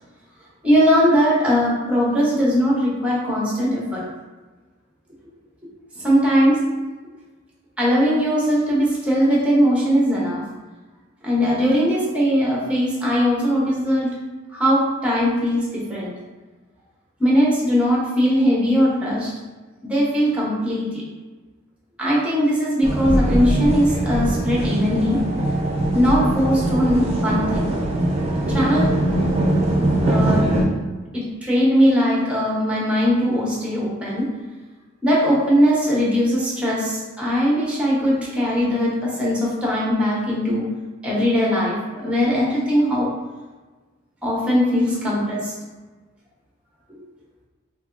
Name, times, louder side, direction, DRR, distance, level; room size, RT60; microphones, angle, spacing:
voice 1, 0.6-4.0 6.0-6.6 7.8-10.4 11.2-14.1 14.5-16.1 17.2-19.3 19.8-21.0 22.0-25.2 25.9-27.7 28.5-28.9 30.0-30.5 31.1-34.3 35.0-40.7 41.0-43.1 44.2-45.5 46.9-47.0, equal, 5° right, -5 dB, 0.8 m, -20 dB
sound 1, 22.8-30.6, right 1 dB, 30° right, 0.5 m, -21 dB
3.4 x 2.8 x 2.5 m, 1.2 s
head